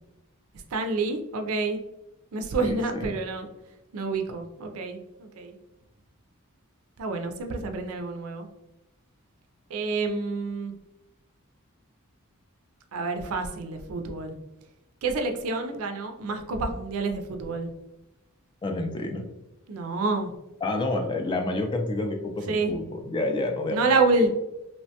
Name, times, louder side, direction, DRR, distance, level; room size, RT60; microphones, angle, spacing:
voice 1, 0.7-1.8 2.3-3.5 3.9-5.6 7.0-8.5 9.7-10.7 12.9-14.4 15.0-17.7 19.7-20.3 22.5-22.7 23.7-24.3, right 3 dB, 75° right, 5 dB, 0.4 m, -28 dB
voice 2, 18.6-19.3 20.6-23.9, left 2 dB, 20° left, 3 dB, 0.3 m, -29 dB
3.0 x 2.2 x 2.7 m, 0.95 s
head